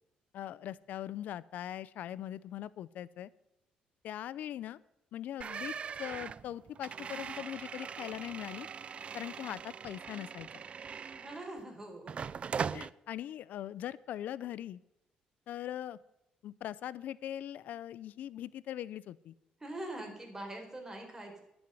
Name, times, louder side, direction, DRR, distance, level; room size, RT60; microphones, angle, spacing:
voice 1, 0.3-3.3 4.0-4.8 5.1-5.7 6.0-8.7 9.1-10.6 12.7-14.8 15.5-16.0 16.4-19.3, left 11 dB, 70° left, 19 dB, 0.6 m, -41 dB
sound 1, 5.4-11.6 12.1-12.9, right 6 dB, 45° right, 0.4 m, -41 dB
voice 2, 11.1-12.2 19.6-21.4, right 1 dB, 15° right, 2 dB, 4.5 m, -43 dB
11.0 x 7.1 x 9.1 m, 0.84 s
cardioid pair, 85°, 3 cm